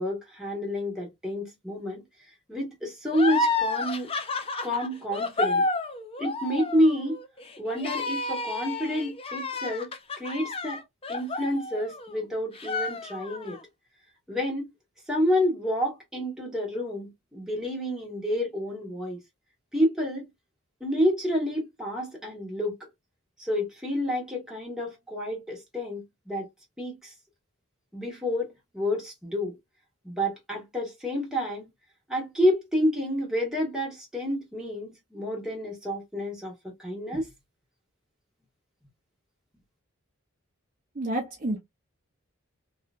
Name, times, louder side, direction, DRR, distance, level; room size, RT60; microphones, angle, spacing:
voice 1, 0.0-2.0 2.5-4.1 4.6-5.6 6.2-7.2 7.6-10.8 11.1-13.6 14.3-14.7 15.1-19.2 19.7-20.3 20.8-22.7 23.4-26.5 26.8-27.1 27.9-29.6 30.0-31.6 32.1-36.5 36.8-37.3, equal, 5° right, 1.4 m, -29 dB
sound 1, 3.1-12.2 12.5-13.6, left 3 dB, 25° left, 0.5 m, -30 dB
voice 2, 41.0-41.6, right 1 dB, 35° right, 0.6 m, -29 dB
3.1 x 2.8 x 2.4 m
head